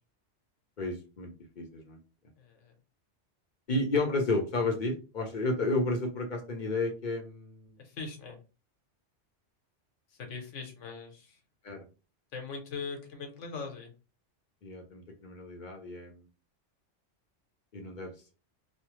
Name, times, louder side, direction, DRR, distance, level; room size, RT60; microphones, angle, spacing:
voice 1, 0.8-2.0 3.7-7.8 11.6-11.8 14.6-16.3 17.7-18.3, left 2 dB, 50° left, 2 dB, 0.7 m, -32 dB
voice 2, 2.4-2.7 7.8-8.4 10.1-11.4 12.3-13.9, left 4 dB, 85° left, 3 dB, 1.2 m, -41 dB
3.1 x 2.1 x 3.0 m, 0.32 s
omnidirectional pair, 1.2 m